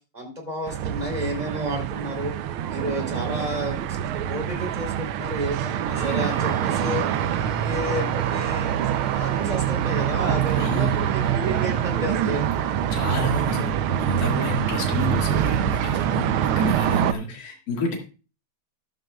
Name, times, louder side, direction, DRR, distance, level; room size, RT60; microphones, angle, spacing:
voice 1, 0.1-2.3 2.7-4.0 4.3-7.0 7.4-8.7 9.1-12.5, equal, 20° right, 1 dB, 3.3 m, -31 dB
sound 1, 0.7-17.1, right 10 dB, 90° right, 1.6 m, -25 dB
Bowed string instrument, 5.9-11.9, left 2 dB, 30° left, 4.3 m, -47 dB
voice 2, 10.6-11.0 12.9-18.0, left 2 dB, 45° left, 0 dB, 2.4 m, -30 dB
13.5 x 12.0 x 2.3 m, 0.33 s
omnidirectional pair, 2.3 m